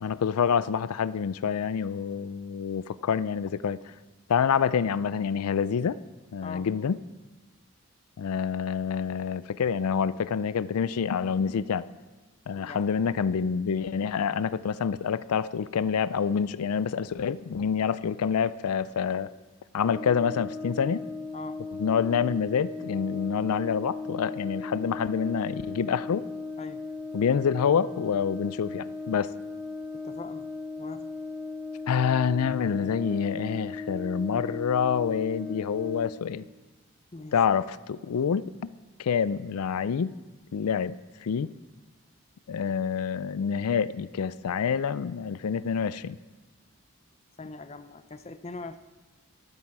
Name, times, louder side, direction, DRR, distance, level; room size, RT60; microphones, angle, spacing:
voice 1, 0.0-3.9 4.3-6.0 6.3-7.0 8.2-11.9 12.5-19.3 19.7-21.1 21.7-26.2 27.1-29.3 31.9-36.5 37.3-38.7 39.0-40.1 40.5-41.5 42.5-46.2, left 7 dB, 85° left, 17 dB, 0.4 m, -27 dB
voice 2, 12.6-12.9 21.3-21.6 26.6-26.8 29.9-30.5 30.8-31.1 37.1-37.3 47.4-48.8, left 3 dB, 30° left, 10 dB, 0.5 m, -41 dB
Brass instrument, 19.8-36.2, left 3 dB, 5° right, 0.9 m, -37 dB
13.0 x 13.0 x 4.8 m, 1.2 s
head